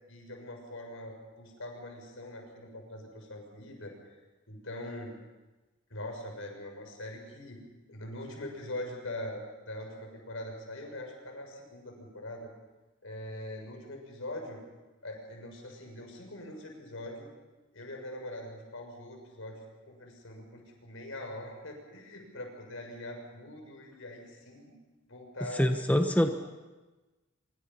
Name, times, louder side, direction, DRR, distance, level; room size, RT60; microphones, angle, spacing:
voice 1, 0.1-3.9 4.5-5.1 5.9-7.6 7.9-12.5 13.0-14.6 15.0-17.3 17.7-24.7 25.1-26.3, left 1 dB, 70° left, 2 dB, 6.7 m, -42 dB
voice 2, 25.5-26.3, equal, 10° left, 5 dB, 1.1 m, -25 dB
25.0 x 24.5 x 5.7 m, 1.2 s
head